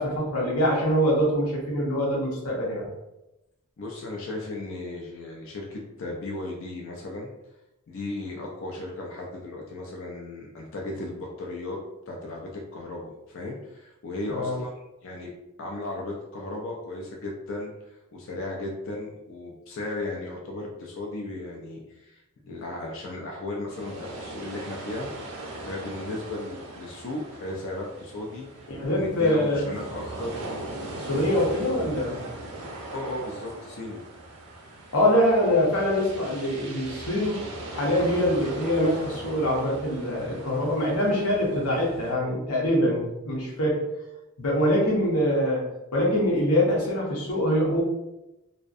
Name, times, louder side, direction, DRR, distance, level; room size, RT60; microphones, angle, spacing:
voice 1, 0.0-2.9 14.3-14.5 28.7-29.6 31.1-32.2 34.9-37.4 37.7-43.8 44.4-47.8, equal, 90° left, -2 dB, 0.8 m, -24 dB
voice 2, 3.8-7.3 7.9-11.8 12.1-14.7 15.0-15.3 15.6-25.2 25.6-28.5 28.9-30.4 31.0-31.1 32.9-34.0, left 2 dB, 55° left, -1 dB, 0.3 m, -35 dB
sound 1, 23.7-42.1, right 2 dB, 80° right, 0.6 m, -39 dB
2.5 x 2.1 x 2.4 m, 0.93 s
head